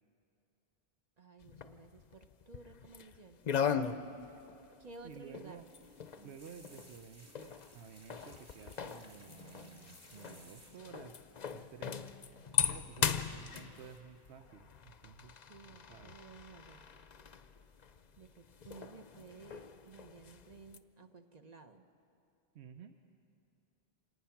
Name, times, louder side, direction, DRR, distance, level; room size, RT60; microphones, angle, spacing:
voice 1, 1.2-4.3 4.8-5.7 6.1-6.4 15.5-16.9 18.2-21.8, right 4 dB, 40° right, 7 dB, 0.9 m, -55 dB
sound 1, 1.4-3.2 3.4-20.8, left 7 dB, 45° left, 0.7 m, -39 dB
voice 2, 5.0-5.7 6.2-12.1 12.7-15.3 15.6-16.2 22.5-22.9, right 7 dB, 85° right, 7 dB, 1.1 m, -53 dB
sound 2, 5.5-11.1 12.0-12.4 12.6-12.9 14.1-14.7 15.0-15.6 16.0-16.4 16.8-16.9, right 1 dB, 25° right, 2.4 m, -61 dB
26.5 x 19.0 x 5.9 m, 2.7 s
omnidirectional pair, 1.1 m